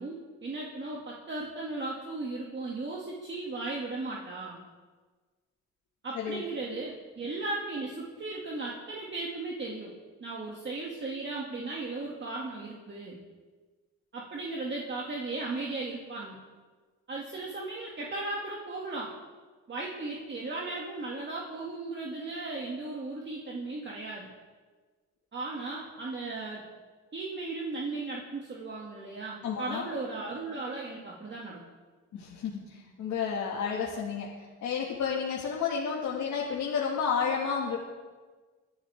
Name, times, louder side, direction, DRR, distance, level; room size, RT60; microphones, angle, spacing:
voice 1, 0.0-4.6 6.0-9.9 10.2-13.2 14.1-16.4 17.1-19.1 19.7-24.3 25.3-26.6 27.1-31.6, right 3 dB, 35° right, -3 dB, 2.5 m, -36 dB
voice 2, 29.4-29.9 32.1-37.8, left 6 dB, 75° left, -3 dB, 2.2 m, -31 dB
22.5 x 11.0 x 3.7 m, 1.4 s
cardioid pair, 90°, 30 cm